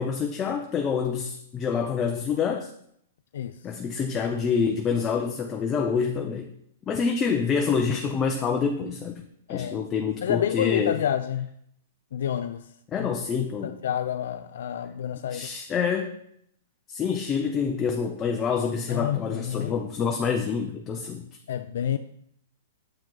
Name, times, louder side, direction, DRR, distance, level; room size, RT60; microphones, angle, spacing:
voice 1, 0.0-2.7 3.6-6.5 6.9-9.2 9.5-11.0 12.9-13.8 15.3-16.1 16.9-21.2, left 6 dB, 20° left, 0.5 m, -27 dB
voice 2, 9.5-9.8 10.2-11.5 12.1-12.7 13.0-15.5 18.9-19.8 21.5-22.0, left 10 dB, 70° left, 0.3 m, -29 dB
7.6 x 4.7 x 3.9 m
hypercardioid pair, 145°, 0 cm